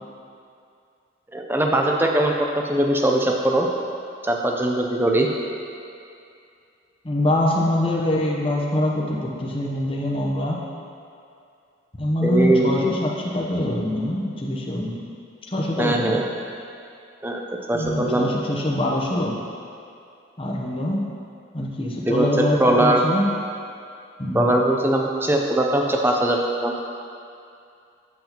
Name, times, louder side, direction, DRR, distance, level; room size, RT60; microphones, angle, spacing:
voice 1, 1.3-3.7 4.2-5.3 12.2-12.7 15.8-16.2 17.2-17.4 17.7-18.3 22.1-22.3 22.6-23.0 24.3-26.7, right 1 dB, 10° right, 1 dB, 0.5 m, -20 dB
voice 2, 7.0-10.6 12.0-15.0 15.5-16.2 17.7-19.4 20.4-21.0 21.5-23.3 24.2-24.5, left 1 dB, 30° left, -3 dB, 0.8 m, -24 dB
7.9 x 7.3 x 2.9 m, 2.5 s
head